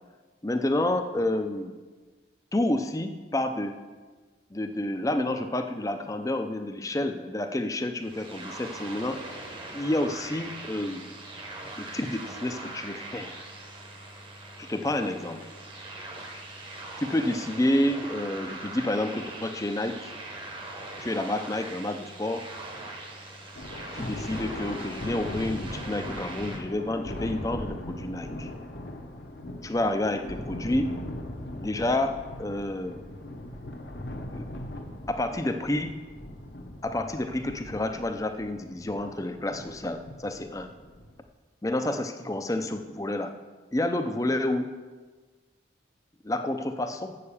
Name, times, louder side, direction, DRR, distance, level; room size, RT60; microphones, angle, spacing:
voice 1, 0.4-1.7 2.5-3.8 4.5-9.2 9.7-11.1 11.8-13.4 14.6-15.5 17.0-20.1 21.0-22.5 23.9-28.5 29.6-31.0 31.6-33.0 34.3-34.4 35.1-36.0 36.8-40.7 41.6-43.3 43.7-44.7 46.2-47.2, left 1 dB, 15° left, 7 dB, 0.5 m, -29 dB
sound 1, 8.0-26.6, right 2 dB, 25° right, 1.0 m, -41 dB
Thunder, 23.5-41.2, left 1 dB, 55° left, 1.0 m, -39 dB
7.8 x 6.7 x 7.0 m, 1.3 s
head